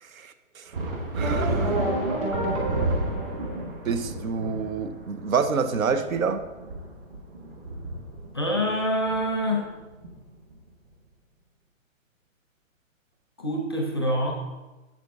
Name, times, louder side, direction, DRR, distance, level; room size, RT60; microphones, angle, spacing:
voice 1, 0.0-0.7 1.1-1.8 3.8-6.5, right 5 dB, 80° right, 10 dB, 0.9 m, -28 dB
sound 1, 0.7-10.7, right 2 dB, 45° right, 1.6 m, -32 dB
sound 2, 1.2-4.0, right 2 dB, 25° right, 1.4 m, -29 dB
voice 2, 8.3-9.7 13.4-14.3, equal, 20° left, 1 dB, 0.6 m, -26 dB
7.6 x 7.2 x 3.5 m, 1.1 s
hypercardioid pair, 175°, 40 cm